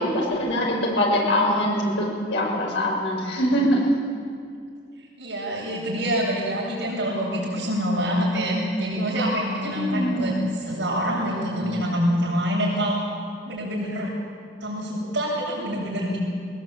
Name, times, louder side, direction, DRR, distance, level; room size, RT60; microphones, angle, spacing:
voice 1, 0.0-3.9 9.6-10.4, equal, 90° left, -2 dB, 6.8 m, -23 dB
voice 2, 5.2-10.3 10.6-13.0 13.5-14.1 14.6-16.2, equal, 75° right, -8 dB, 7.5 m, -26 dB
21.0 x 20.0 x 9.0 m, 2.3 s
head